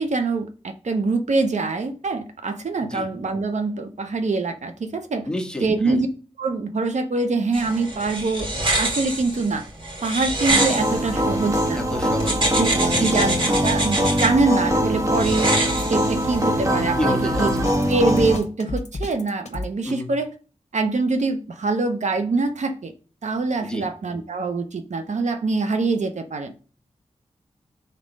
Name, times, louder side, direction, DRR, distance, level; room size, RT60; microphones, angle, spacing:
voice 1, 0.0-5.3 5.6-6.1 6.4-8.5 8.8-9.6 10.0-11.8 12.5-15.6 15.9-17.5 17.9-20.3 20.7-22.9 23.2-26.6, right 3 dB, 75° right, 0.7 m, -24 dB
voice 2, 5.2-6.0 11.7-13.1 13.4-13.7 16.9-17.5 19.8-20.1 23.6-23.9, left 1 dB, 5° left, 1.4 m, -31 dB
sound 1, 7.5-11.7 12.2-14.3 15.1-16.5, right 2 dB, 45° right, 2.4 m, -26 dB
sound 2, 10.5-18.4, equal, 25° right, 1.1 m, -22 dB
Drum kit, 17.3-19.7, left 2 dB, 70° left, 0.9 m, -31 dB
5.2 x 4.3 x 5.3 m
wide cardioid pair, 65°, 12 cm